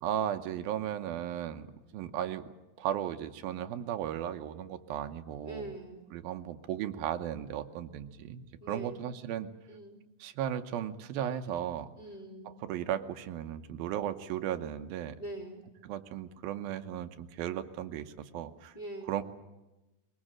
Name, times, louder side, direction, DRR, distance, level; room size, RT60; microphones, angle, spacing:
voice 1, 0.0-1.7 1.9-2.5 2.8-5.8 6.1-9.5 10.2-11.9 12.5-15.2 15.8-18.7 19.1-19.2, right 10 dB, 75° right, 9 dB, 2.6 m, -36 dB
voice 2, 5.4-6.0 8.6-9.0 9.7-10.0 12.0-12.6 15.2-15.6 18.7-19.2, right 1 dB, 10° left, 1 dB, 3.0 m, -43 dB
23.0 x 22.5 x 7.5 m, 1.0 s
omnidirectional pair, 4.7 m